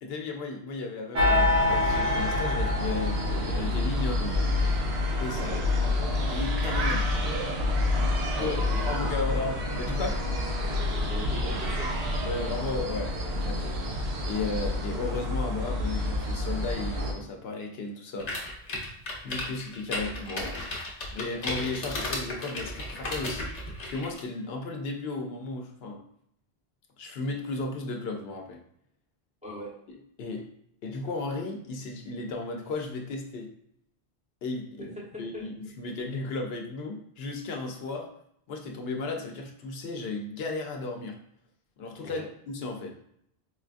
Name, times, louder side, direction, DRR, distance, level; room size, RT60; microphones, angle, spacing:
voice 1, 0.0-4.5 5.2-5.5 5.8-7.1 8.4-8.6 8.8-10.2 12.2-13.8 14.2-18.3 18.6-18.8 19.2-20.7 21.1-23.5 23.8-26.0 27.0-28.6 29.9-30.5 30.8-33.5 34.4-38.1 38.5-41.2 41.8-43.0, left 3 dB, 75° left, 2 dB, 0.8 m, -35 dB
sound 1, 1.1-17.1, left 2 dB, 85° right, 0.9 m, -27 dB
voice 2, 8.3-9.3 11.1-11.9 29.4-29.7 34.8-34.9 35.3-35.4 42.0-42.3, left 1 dB, 5° right, -6 dB, 0.8 m, -38 dB
sound 2, 18.2-24.2, left 1 dB, 45° left, 0.7 m, -35 dB
4.4 x 2.3 x 2.4 m, 0.71 s
omnidirectional pair, 1.0 m